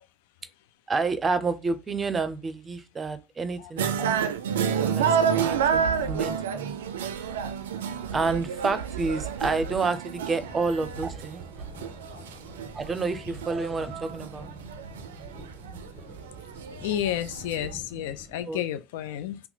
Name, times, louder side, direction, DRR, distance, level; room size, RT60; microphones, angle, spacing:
voice 1, 0.9-4.3 4.8-6.8 8.1-11.4 12.7-14.5 18.5-18.6, right 4 dB, 25° right, 0.6 m, -29 dB
sound 1, 3.8-17.7, right 7 dB, 85° right, 0.3 m, -30 dB
sound 2, 10.3-18.4, left 1 dB, ahead, 1.0 m, -48 dB
voice 2, 16.8-19.4, left 11 dB, 75° left, 0.4 m, -31 dB
2.9 x 2.2 x 3.9 m
hypercardioid pair, 75°, 0 cm